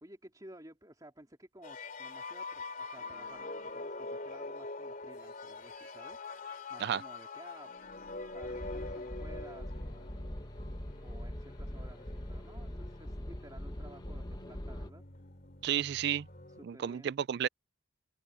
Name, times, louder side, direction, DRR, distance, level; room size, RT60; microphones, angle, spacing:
voice 1, 0.0-6.2 6.7-7.7 8.3-10.2 11.0-15.0 16.5-17.1, right 1 dB, 20° right, 3.2 m, -54 dB
sound 1, 1.6-16.6, left 3 dB, 40° left, 2.7 m, -45 dB
sound 2, 8.4-14.9, left 1 dB, 20° left, 1.1 m, -42 dB
voice 2, 15.6-16.3 16.6-17.5, right 9 dB, 50° right, 0.3 m, -32 dB
open air
head